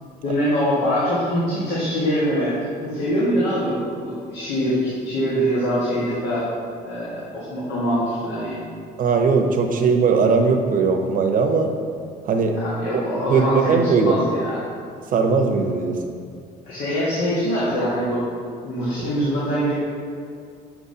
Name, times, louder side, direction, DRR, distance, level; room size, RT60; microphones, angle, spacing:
voice 1, 0.2-2.5 2.8-6.5 6.8-8.6 12.5-14.6 16.7-18.2 18.6-19.7, equal, 90° left, -8 dB, 1.6 m, -23 dB
voice 2, 9.0-11.7 12.3-12.5 12.9-13.0 13.3-14.2 15.1-16.0, right 5 dB, 55° right, 4 dB, 0.8 m, -19 dB
7.1 x 5.8 x 2.8 m, 2.2 s
cardioid pair, 110°, 17 cm